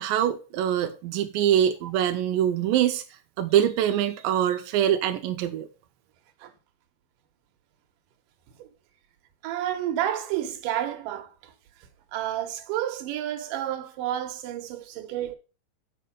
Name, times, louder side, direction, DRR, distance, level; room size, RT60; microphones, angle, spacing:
voice 1, 0.0-3.0 3.4-5.7, right 10 dB, 90° right, 2.5 m, -24 dB
voice 2, 9.4-11.5 12.1-15.4, right 11 dB, 75° right, 2.6 m, -30 dB
8.5 x 5.5 x 5.3 m
omnidirectional pair, 4.0 m